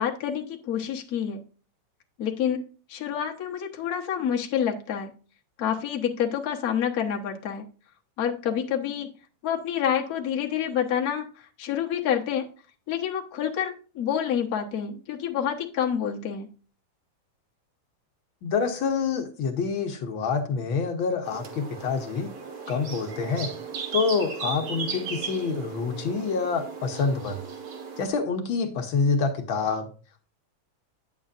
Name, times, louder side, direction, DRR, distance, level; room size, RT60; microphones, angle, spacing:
voice 1, 0.0-1.4 2.2-2.6 2.9-5.1 5.6-7.6 8.2-9.1 9.4-12.5 12.9-16.5, left 9 dB, 90° left, 1 dB, 0.8 m, -28 dB
voice 2, 18.4-22.3 22.7-23.5 23.9-27.4 28.0-29.9, left 5 dB, 70° left, 4 dB, 1.2 m, -27 dB
sound 1, 21.2-28.1, right 5 dB, 55° right, 2.2 m, -36 dB
9.2 x 7.7 x 2.5 m, 0.36 s
omnidirectional pair, 3.4 m